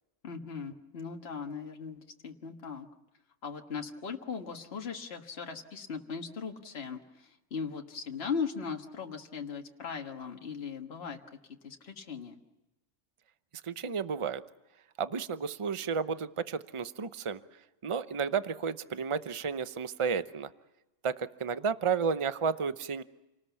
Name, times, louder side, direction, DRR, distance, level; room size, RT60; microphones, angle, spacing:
voice 1, 0.2-2.9 3.4-11.2 11.6-12.4, left 5 dB, 55° left, 3 dB, 1.8 m, -38 dB
voice 2, 13.6-14.4 15.0-17.4 17.8-20.5 21.0-23.0, right 6 dB, 30° right, 12 dB, 0.8 m, -32 dB
28.5 x 19.0 x 7.1 m, 1.0 s
omnidirectional pair, 1.3 m